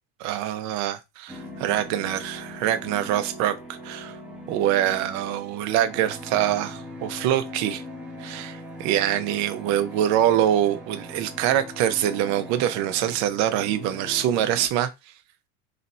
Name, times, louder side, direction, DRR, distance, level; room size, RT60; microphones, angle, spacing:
voice 1, 0.2-4.1 4.5-7.8 8.2-14.9, right 11 dB, 50° right, 0.7 m, -24 dB
sound 1, 1.3-14.7, equal, 5° right, 0.8 m, -40 dB
3.2 x 2.7 x 4.1 m
cardioid pair, 160°, 35 cm